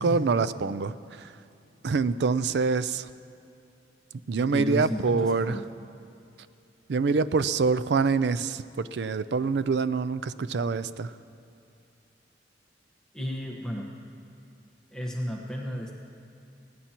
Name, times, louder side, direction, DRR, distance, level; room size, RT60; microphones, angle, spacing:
voice 1, 0.0-1.3 1.8-3.1 4.3-5.6 6.9-11.1, right 4 dB, 65° right, 14 dB, 0.4 m, -26 dB
voice 2, 4.4-5.6 13.1-13.9 14.9-15.9, equal, 5° left, -2 dB, 1.2 m, -33 dB
22.0 x 16.5 x 3.0 m, 2.6 s
head